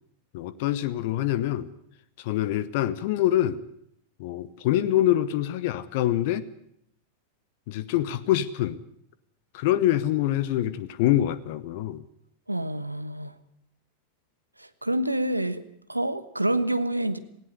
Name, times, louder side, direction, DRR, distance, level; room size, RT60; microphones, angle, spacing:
voice 1, 0.3-1.7 2.2-3.6 4.2-6.5 7.7-8.8 9.5-12.1, left 13 dB, 50° left, 17 dB, 0.9 m, -25 dB
voice 2, 12.5-13.3 14.6-15.6 15.9-17.2, right 1 dB, 85° right, 12 dB, 1.2 m, -27 dB
18.5 x 16.5 x 9.7 m, 0.72 s
figure-of-eight pair, 90°, 0 cm